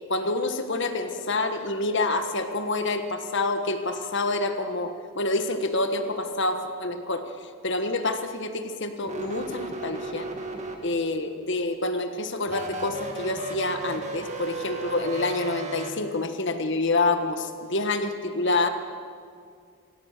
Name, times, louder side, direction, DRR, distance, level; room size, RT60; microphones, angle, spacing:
voice 1, 0.1-10.3 10.8-18.7, left 2 dB, 55° left, 8 dB, 1.6 m, -27 dB
sound 1, 9.0-11.2 12.5-15.9, right 2 dB, 30° right, 2.0 m, -35 dB
25.5 x 17.0 x 6.8 m, 2.2 s
head